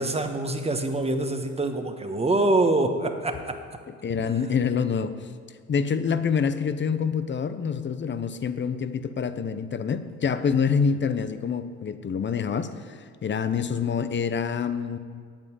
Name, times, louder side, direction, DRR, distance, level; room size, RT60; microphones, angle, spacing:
voice 1, 0.0-3.6, right 2 dB, 20° right, 6 dB, 1.2 m, -25 dB
voice 2, 4.0-5.1 5.7-15.0, left 6 dB, 40° left, 11 dB, 0.8 m, -26 dB
9.0 x 7.9 x 9.3 m, 2.1 s
cardioid pair, 90°, 30 cm